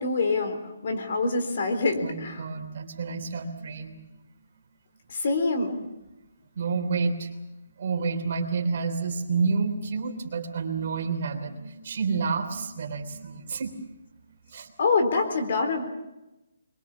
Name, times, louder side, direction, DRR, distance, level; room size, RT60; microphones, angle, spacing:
voice 1, 0.0-2.5 5.1-5.8 14.8-15.8, left 3 dB, 40° left, 7 dB, 3.8 m, -25 dB
voice 2, 2.0-4.0 6.5-7.3 7.8-13.7 14.5-14.7, right 4 dB, 40° right, 4 dB, 3.3 m, -29 dB
24.5 x 23.0 x 7.2 m, 0.95 s
hypercardioid pair, 175°, 0 cm